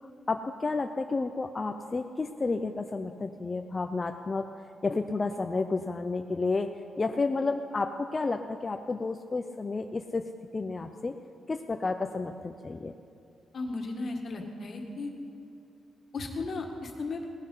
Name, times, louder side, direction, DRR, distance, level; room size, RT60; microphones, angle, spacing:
voice 1, 0.0-4.5 4.8-6.7 7.0-11.1 11.5-12.9, left 3 dB, 25° left, 6 dB, 0.5 m, -31 dB
voice 2, 13.5-15.1 16.1-17.3, left 3 dB, 50° left, 2 dB, 1.9 m, -35 dB
17.5 x 10.5 x 5.6 m, 2.6 s
cardioid pair, 120°, 0 cm